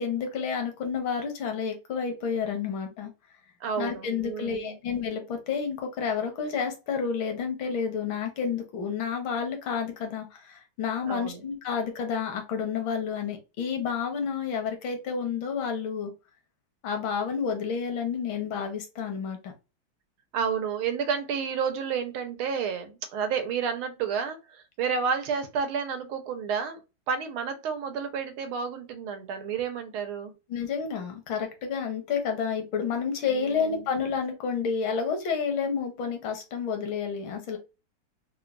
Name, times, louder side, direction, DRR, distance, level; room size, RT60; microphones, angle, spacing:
voice 1, 0.0-3.1 3.8-16.1 16.8-19.5 30.5-37.6, left 6 dB, 70° left, 1.7 m, -30 dB
voice 2, 3.6-4.8 11.1-11.4 20.3-26.8 27.1-30.3 33.3-33.9, right 6 dB, 90° right, 1.6 m, -31 dB
4.4 x 2.2 x 2.4 m
omnidirectional pair, 2.3 m